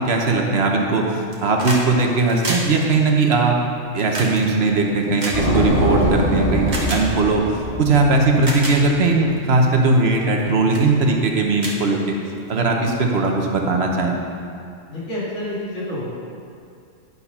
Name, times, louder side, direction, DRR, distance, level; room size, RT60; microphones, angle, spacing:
voice 1, 0.0-3.6 3.9-7.4 7.8-12.1 12.5-14.1, right 3 dB, 60° right, 1 dB, 1.1 m, -19 dB
sound 1, 1.2-1.9 2.1-6.0 6.7-7.0 7.8-7.9 8.3-8.8 9.4-9.6 10.1-10.4 10.7-10.9 11.2-11.3 11.6-12.5 13.7-13.8, right 2 dB, 40° right, 1.3 m, -30 dB
sound 2, 5.3-9.0, equal, 30° left, 1.3 m, -23 dB
voice 2, 14.9-16.0, left 1 dB, 85° left, -9 dB, 2.8 m, -28 dB
9.4 x 4.6 x 5.5 m, 2.4 s
omnidirectional pair, 1.2 m